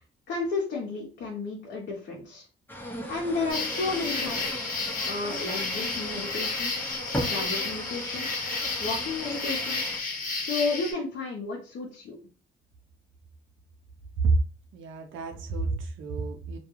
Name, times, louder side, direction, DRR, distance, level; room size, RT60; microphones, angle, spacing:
voice 1, 0.3-2.5 3.1-6.7 7.2-8.3 8.8-9.8 10.4-12.2, left 3 dB, 60° left, -2 dB, 0.7 m, -32 dB
sound 1, 2.7-10.0, equal, 10° left, 0.7 m, -37 dB
sound 2, 3.5-10.9, left 3 dB, 45° left, 1.0 m, -32 dB
voice 2, 14.7-16.6, right 5 dB, 75° right, 4 dB, 0.5 m, -30 dB
2.3 x 2.2 x 3.0 m, 0.39 s
cardioid pair, 90°, 20 cm